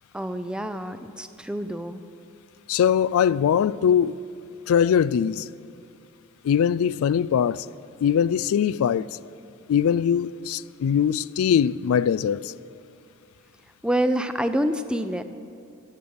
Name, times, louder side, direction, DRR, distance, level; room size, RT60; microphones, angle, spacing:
voice 1, 0.1-2.0 13.8-15.2, equal, 5° right, 0.5 m, -27 dB
voice 2, 2.7-4.1 4.7-5.5 6.4-7.7 8.0-9.2 9.7-12.5, left 8 dB, 80° left, 0.3 m, -21 dB
15.0 x 8.0 x 9.5 m
head